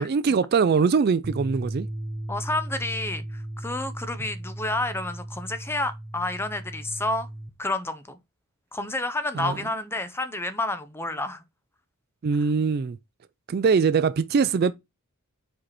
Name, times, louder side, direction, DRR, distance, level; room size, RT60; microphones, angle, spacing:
voice 1, 0.0-1.9 9.4-9.5 12.2-13.0 13.5-14.7, right 5 dB, 45° right, 0.3 m, -22 dB
sound 1, 1.2-7.5, right 1 dB, 25° right, 1.0 m, -36 dB
voice 2, 2.3-7.3 7.6-8.2 8.7-11.4, left 2 dB, 10° left, 0.6 m, -30 dB
5.1 x 4.7 x 4.2 m
head